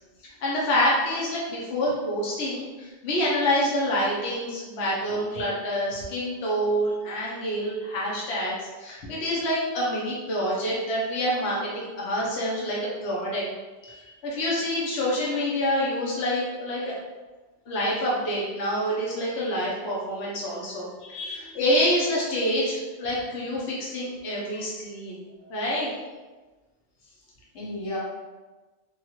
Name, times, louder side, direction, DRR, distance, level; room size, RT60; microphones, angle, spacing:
voice 1, 0.4-13.4 14.2-16.9 17.7-21.2 21.5-25.9, equal, 65° left, -5 dB, 1.0 m, -27 dB
voice 2, 13.8-14.1 21.0-21.5 27.5-28.0, left 2 dB, 80° left, -4 dB, 1.2 m, -36 dB
3.2 x 2.3 x 2.9 m, 1.2 s
omnidirectional pair, 1.3 m